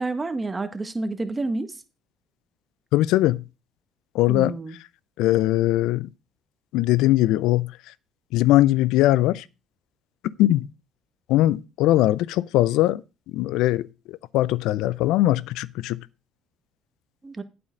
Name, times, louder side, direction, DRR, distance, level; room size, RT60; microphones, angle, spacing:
voice 1, 0.0-1.7 4.3-4.8 17.2-17.4, right 3 dB, 25° right, 1.5 m, -29 dB
voice 2, 2.9-3.4 4.1-4.5 5.2-6.1 6.7-7.7 8.3-9.4 10.4-10.7 11.3-13.0 13.3-13.9 14.3-16.0, left 15 dB, 75° left, 0.4 m, -20 dB
8.7 x 6.9 x 5.1 m
hypercardioid pair, 65°, 0 cm